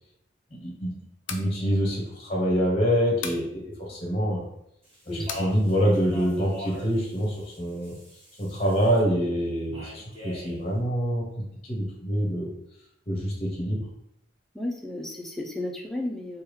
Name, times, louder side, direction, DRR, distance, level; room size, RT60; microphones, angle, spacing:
voice 1, 0.5-0.9 1.3-4.5 5.1-7.9 8.4-11.3 11.6-12.5 13.1-13.8, equal, 30° left, -3 dB, 0.7 m, -26 dB
sound 1, 1.1-1.5 3.2-3.5 5.3-5.5, left 6 dB, 85° left, 0.4 m, -35 dB
Speech, 4.8-9.0 9.7-10.6, left 1 dB, 30° right, 1.1 m, -42 dB
voice 2, 14.5-16.4, left 1 dB, ahead, 0 dB, 0.3 m, -33 dB
3.3 x 2.3 x 3.0 m, 0.78 s
head